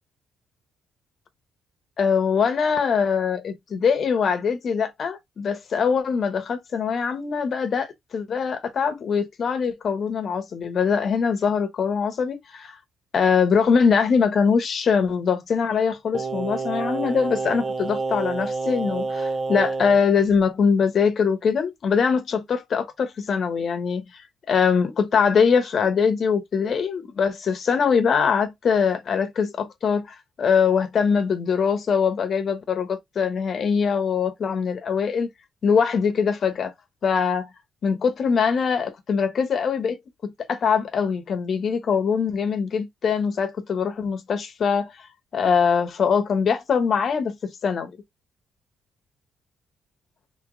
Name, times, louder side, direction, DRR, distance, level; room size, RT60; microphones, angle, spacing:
voice 1, 2.0-12.7 13.1-24.0 24.5-30.1 30.4-35.3 35.6-36.7 37.0-37.5 37.8-40.0 40.2-44.9 45.3-47.9, left 6 dB, 55° left, 0.9 m, -22 dB
Singing, 16.1-20.0 20.3-20.4, right 3 dB, 30° right, 0.4 m, -28 dB
3.1 x 2.9 x 3.6 m
cardioid pair, 90°, 0 cm